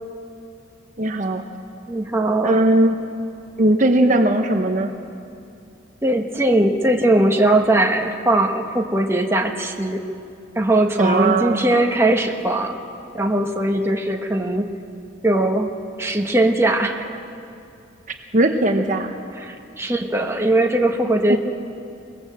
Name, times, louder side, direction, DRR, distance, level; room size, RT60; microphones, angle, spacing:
voice 1, 1.0-1.4 2.4-2.9 3.6-4.9 11.0-11.6 18.3-19.1 21.3-21.4, right 1 dB, 40° right, 5 dB, 1.0 m, -18 dB
voice 2, 1.9-2.6 6.0-10.0 10.5-12.8 13.1-14.7 15.2-15.7 16.0-17.2 19.4-21.4, right 1 dB, 15° right, 2 dB, 1.3 m, -20 dB
23.0 x 19.0 x 7.6 m, 2.6 s
head